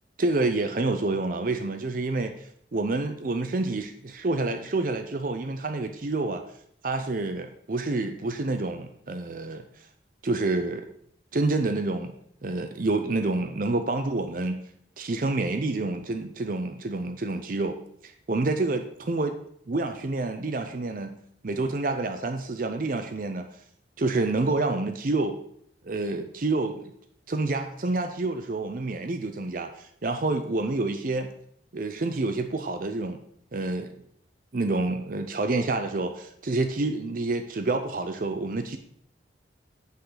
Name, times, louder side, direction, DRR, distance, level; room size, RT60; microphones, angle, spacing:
voice 1, 0.2-2.3 2.7-6.4 6.8-9.6 10.2-10.9 11.3-12.1 12.4-14.6 15.0-17.8 18.0-19.3 19.7-21.2 21.4-23.5 24.0-25.4 25.8-26.9 27.3-31.3 31.7-33.2 33.5-33.9 34.5-38.8, right 2 dB, 50° right, 7 dB, 0.6 m, -28 dB
8.2 x 4.0 x 6.5 m, 0.67 s
head